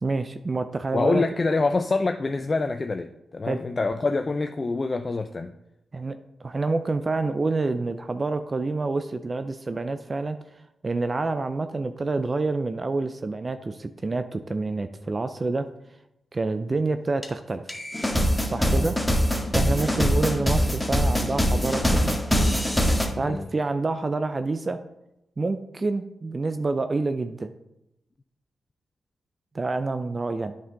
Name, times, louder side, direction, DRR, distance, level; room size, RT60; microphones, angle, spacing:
voice 1, 0.0-1.3 3.4-3.6 5.9-10.4 10.8-15.7 16.3-17.6 18.4-19.0 19.3-22.2 23.2-24.8 25.4-27.5 29.5-30.5, right 3 dB, 40° right, 10 dB, 0.5 m, -27 dB
voice 2, 0.9-5.5 18.7-18.9 19.8-20.1 23.1-23.5, left 3 dB, 40° left, 6 dB, 0.5 m, -26 dB
sound 1, 17.2-17.3 17.7-23.1, equal, 5° left, 1.6 m, -23 dB
8.4 x 5.5 x 3.8 m, 0.85 s
supercardioid pair, 40°, 0 cm